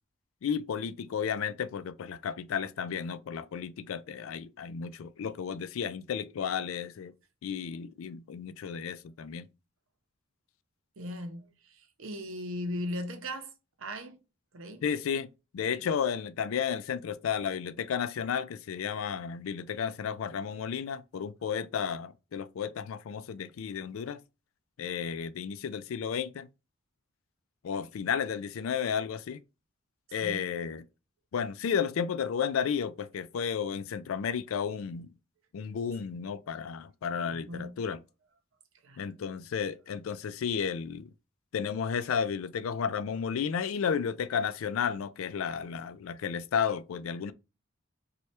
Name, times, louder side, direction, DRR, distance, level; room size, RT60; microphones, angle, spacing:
voice 1, 0.4-7.1 7.4-9.4 14.8-15.3 15.5-24.2 24.8-26.5 27.6-29.4 30.1-30.8 31.3-35.1 35.5-38.0 39.0-41.1 41.5-47.3, left 7 dB, 85° left, 0.4 m, -33 dB
voice 2, 11.0-13.5 13.8-14.2 14.5-14.8 15.8-15.9 30.2-30.5 37.2-37.8 38.8-39.1, left 1 dB, 80° right, 0.7 m, -38 dB
3.2 x 2.3 x 4.2 m
head